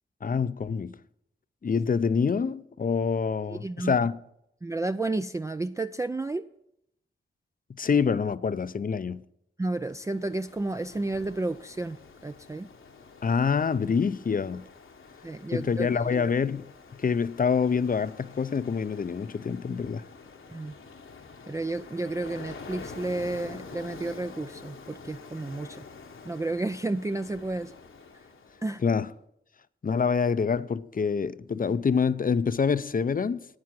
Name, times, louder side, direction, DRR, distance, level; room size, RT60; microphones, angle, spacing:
voice 1, 0.2-1.0 1.6-4.1 7.8-9.2 13.2-14.6 15.5-16.7 17.0-20.0 28.8-29.1 29.8-33.5, left 6 dB, 40° left, 0.5 m, -26 dB
voice 2, 3.5-4.0 4.6-6.4 9.6-12.0 12.2-12.7 15.2-16.3 20.5-20.7 21.5-25.8 26.2-27.7 28.6-28.8, right 2 dB, 15° right, 0.4 m, -31 dB
Ocean, 9.8-28.9, left 4 dB, 70° left, 1.1 m, -47 dB
9.6 x 9.3 x 5.9 m
cardioid pair, 45°, 21 cm